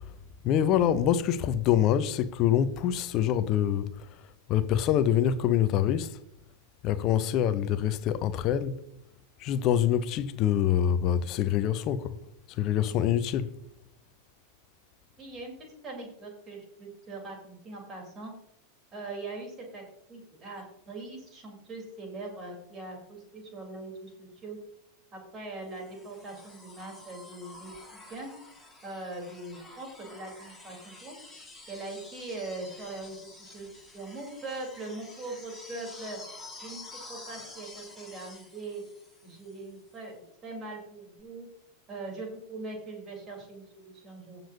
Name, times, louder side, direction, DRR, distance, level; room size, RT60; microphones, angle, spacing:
voice 1, 0.4-3.9 4.5-6.1 6.8-8.8 9.4-12.2 12.6-13.5, left 10 dB, 35° left, 0.7 m, -25 dB
voice 2, 15.2-18.3 18.9-19.8 20.1-24.6 25.1-27.7 28.1-28.3 28.8-31.1 31.7-33.7 33.9-36.2 36.6-36.8 37.1-38.8 39.2-41.5 41.9-44.4, right 2 dB, 25° right, 4.1 m, -41 dB
sound 1, 25.7-39.7 41.2-41.3, left 2 dB, ahead, 3.4 m, -49 dB
17.5 x 6.8 x 2.9 m
figure-of-eight pair, 90°, 0 cm